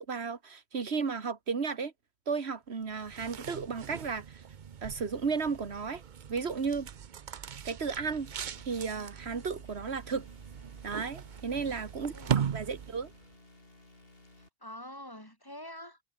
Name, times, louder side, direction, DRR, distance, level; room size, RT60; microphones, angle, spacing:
voice 1, 0.0-1.9 2.3-4.4 4.8-6.0 6.3-6.9 7.6-8.3 8.7-10.3 10.8-12.1 12.5-13.1, right 5 dB, 85° right, 1.9 m, -34 dB
sound 1, 2.9-13.2, right 8 dB, 50° right, 0.8 m, -39 dB
sound 2, 8.0-14.5, left 2 dB, 65° left, 4.5 m, -58 dB
voice 2, 11.5-11.9 12.1-12.4 14.4-16.0, left 1 dB, 20° left, 4.9 m, -46 dB
omnidirectional pair, 1.1 m